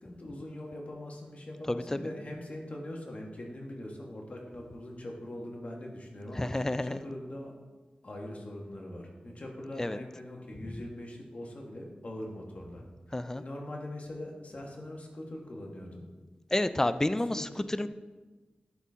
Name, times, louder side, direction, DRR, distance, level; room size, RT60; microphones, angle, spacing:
voice 1, 0.0-7.5 8.0-12.8 13.1-16.0 17.1-17.7, left 1 dB, 45° left, 0 dB, 1.6 m, -42 dB
voice 2, 1.7-2.1 6.4-7.0 9.8-10.0 13.1-13.4 16.5-17.9, left 1 dB, 15° left, 13 dB, 0.3 m, -30 dB
11.0 x 4.2 x 3.6 m, 1.2 s
cardioid pair, 60°, 3 cm